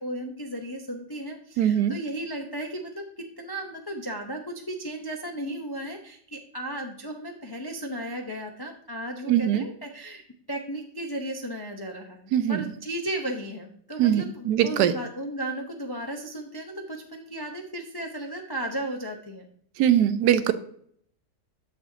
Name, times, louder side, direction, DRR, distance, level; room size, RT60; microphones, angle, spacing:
voice 1, 0.0-19.5, right 1 dB, 35° left, 2 dB, 0.3 m, -35 dB
voice 2, 1.6-1.9 9.3-9.6 12.3-12.6 14.0-14.9 19.8-20.5, right 10 dB, 75° right, 12 dB, 1.2 m, -21 dB
7.3 x 7.1 x 2.7 m, 0.64 s
omnidirectional pair, 1.8 m